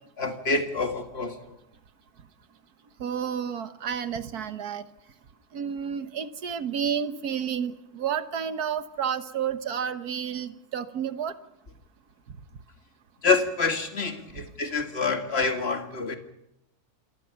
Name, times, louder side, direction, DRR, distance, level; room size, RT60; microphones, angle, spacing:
voice 1, 0.2-1.4 13.2-16.2, left 4 dB, 40° left, 5 dB, 2.2 m, -26 dB
voice 2, 3.0-4.9 5.5-11.3 14.4-14.5, right 8 dB, 75° right, 11 dB, 1.6 m, -31 dB
28.5 x 19.0 x 5.8 m, 0.85 s
omnidirectional pair, 1.7 m